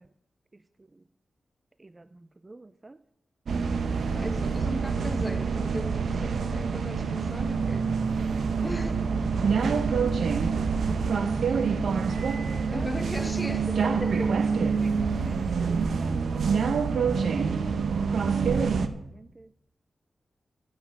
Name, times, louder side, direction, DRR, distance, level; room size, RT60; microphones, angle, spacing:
voice 1, 2.0-3.0 4.0-4.1 9.5-11.0 11.3-11.5 12.5-12.9 14.8-16.2 18.2-18.5 18.8-19.5, right 2 dB, 25° right, 0.4 m, -47 dB
sound 1, 3.5-18.9, right 5 dB, 80° right, 0.9 m, -26 dB
voice 2, 4.1-7.9 8.6-9.0 12.7-14.4, left 1 dB, 10° left, 1.1 m, -37 dB
12.0 x 8.0 x 6.0 m
wide cardioid pair, 105°, 0 cm